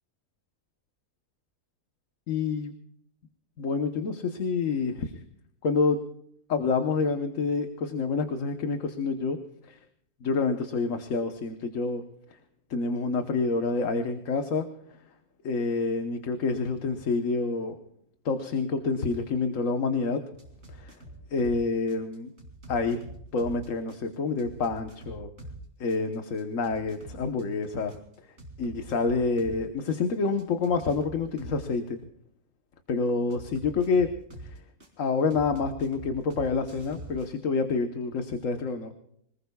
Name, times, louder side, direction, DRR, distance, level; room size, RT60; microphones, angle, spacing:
voice 1, 2.3-2.7 3.6-5.2 5.6-6.0 6.5-9.4 9.7-9.8 10.2-12.0 12.7-14.7 15.4-17.8 18.2-20.2 20.7-20.9 21.3-22.3 22.7-23.0 23.3-25.3 25.8-27.9 28.6-32.0 32.9-34.1 34.4-34.6 35.0-38.9, left 4 dB, 60° left, 6 dB, 1.4 m, -28 dB
sound 1, 20.4-21.6 21.9-25.6 25.9-29.6 29.9-31.7 33.3-34.9 35.3-37.3, right 1 dB, 45° right, 4.1 m, -44 dB
26.5 x 19.0 x 2.3 m, 0.72 s
omnidirectional pair, 1.6 m